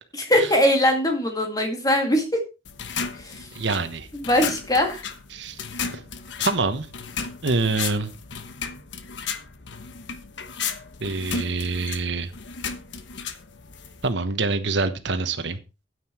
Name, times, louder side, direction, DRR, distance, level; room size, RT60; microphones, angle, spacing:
voice 1, 0.2-2.4 3.1-3.5 4.1-5.1, left 1 dB, 20° left, 4 dB, 2.2 m, -21 dB
sound 1, 2.6-14.1, left 6 dB, 75° left, 1.1 m, -34 dB
voice 2, 3.5-4.1 5.3-5.6 5.9-6.0 6.4-6.9 7.4-8.1 11.0-12.3 14.0-15.6, right 3 dB, 75° right, 9 dB, 1.2 m, -25 dB
9.6 x 9.4 x 4.5 m, 0.29 s
head